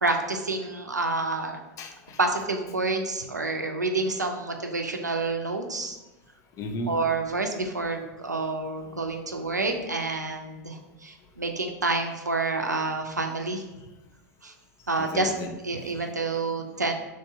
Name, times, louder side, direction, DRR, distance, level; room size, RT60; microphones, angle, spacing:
voice 1, 0.0-1.6 2.2-6.0 6.9-13.7 14.4-14.5 14.9-15.3 15.6-16.9, right 3 dB, 90° right, 4 dB, 0.4 m, -28 dB
voice 2, 1.8-2.2 6.6-7.0 15.0-16.1 16.4-16.6, left 1 dB, 35° left, 5 dB, 0.5 m, -36 dB
3.2 x 2.7 x 4.4 m, 1.1 s
figure-of-eight pair, 85°, 9 cm